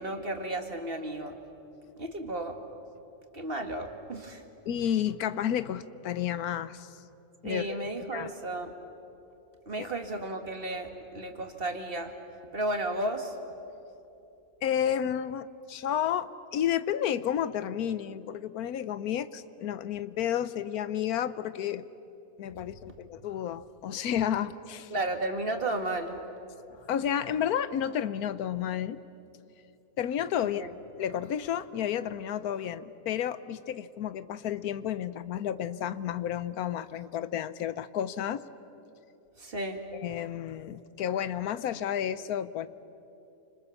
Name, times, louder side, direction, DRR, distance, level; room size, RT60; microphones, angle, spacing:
voice 1, 0.0-1.3 2.0-2.6 3.3-4.4 7.4-8.7 9.7-12.1 12.5-13.4 24.9-26.2 30.4-30.7 39.4-39.8, right 2 dB, 40° right, 5 dB, 2.1 m, -33 dB
voice 2, 4.7-6.9 7.4-8.3 9.8-9.9 14.6-21.9 22.4-24.9 26.7-29.0 30.0-30.7 31.0-38.4 39.9-42.7, left 9 dB, 85° left, 15 dB, 1.3 m, -31 dB
29.0 x 26.0 x 7.1 m, 2.8 s
omnidirectional pair, 1.5 m